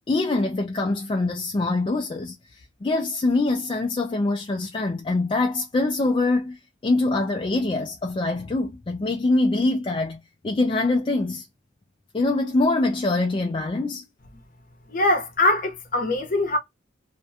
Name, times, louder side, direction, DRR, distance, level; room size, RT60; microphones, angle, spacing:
voice 1, 0.1-11.5 12.1-14.0, left 2 dB, 25° left, 0.3 m, -24 dB
voice 2, 14.9-16.6, left 2 dB, 45° left, 0.7 m, -22 dB
2.5 x 2.2 x 2.6 m
head